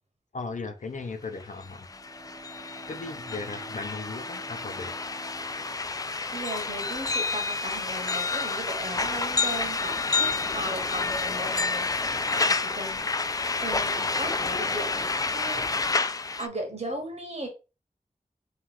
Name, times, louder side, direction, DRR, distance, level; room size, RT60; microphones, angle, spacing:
voice 1, 0.3-1.9 2.9-4.9, left 3 dB, 65° left, 7 dB, 0.7 m, -37 dB
sound 1, 1.4-1.5 1.7-16.5, left 3 dB, 25° left, 0.3 m, -29 dB
Bowed string instrument, 1.8-7.3, right 4 dB, 5° left, 1.1 m, -49 dB
voice 2, 6.3-13.0 13.6-15.6 16.4-17.5, right 1 dB, 50° right, 2 dB, 1.6 m, -37 dB
3.3 x 3.0 x 3.8 m, 0.30 s
cardioid pair, 45°, 14 cm